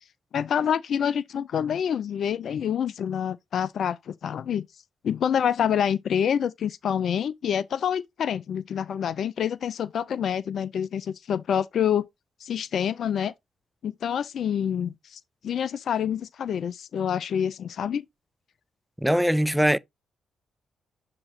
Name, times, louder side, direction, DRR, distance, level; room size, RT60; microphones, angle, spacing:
voice 1, 0.3-4.7 5.0-12.1 12.4-13.3 13.8-18.0, left 8 dB, 60° left, 0.3 m, -27 dB
voice 2, 19.0-19.8, equal, 5° right, 0.4 m, -21 dB
7.2 x 2.9 x 4.6 m
hypercardioid pair, 45°, 0 cm